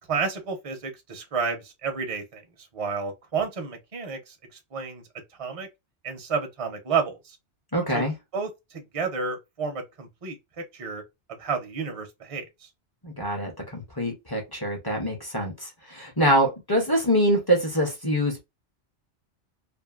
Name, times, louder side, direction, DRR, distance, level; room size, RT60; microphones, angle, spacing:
voice 1, 0.1-2.4 2.7-4.4 4.7-5.0 5.4-5.7 6.0-7.4 7.9-8.1 8.3-11.0 11.3-12.7, right 5 dB, 35° right, 0.7 m, -31 dB
voice 2, 7.7-8.1 13.0-18.4, equal, 25° left, 0.7 m, -25 dB
2.6 x 2.5 x 2.4 m
omnidirectional pair, 1.2 m